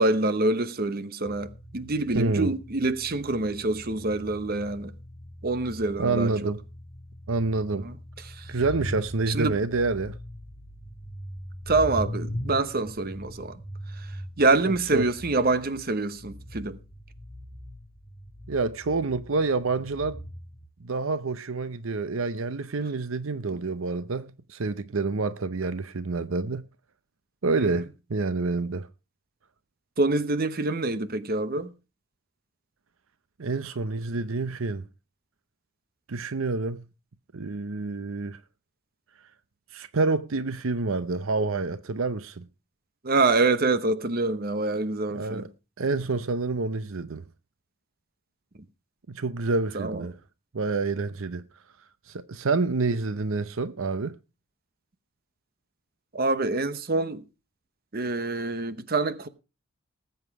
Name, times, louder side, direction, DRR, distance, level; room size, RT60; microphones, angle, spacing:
voice 1, 0.0-4.9 5.4-6.3 7.8-8.0 8.3-8.5 9.3-9.6 11.7-13.6 14.0-14.1 14.4-16.8 27.6-27.7 30.0-31.7 43.0-45.5 49.7-50.1 56.1-57.2 57.9-59.3, right 2 dB, 45° right, 0.9 m, -26 dB
sound 1, 1.2-20.7, equal, 15° left, 1.3 m, -40 dB
voice 2, 2.1-2.5 6.0-6.6 7.3-7.9 8.5-10.2 14.9-15.0 18.5-20.2 20.8-26.6 27.4-28.9 33.4-34.8 36.1-36.8 37.3-38.4 39.7-42.5 45.1-45.5 45.8-47.2 49.1-50.2 50.5-51.4 52.1-54.2, right 3 dB, 70° right, 0.7 m, -28 dB
19.0 x 8.1 x 4.7 m
head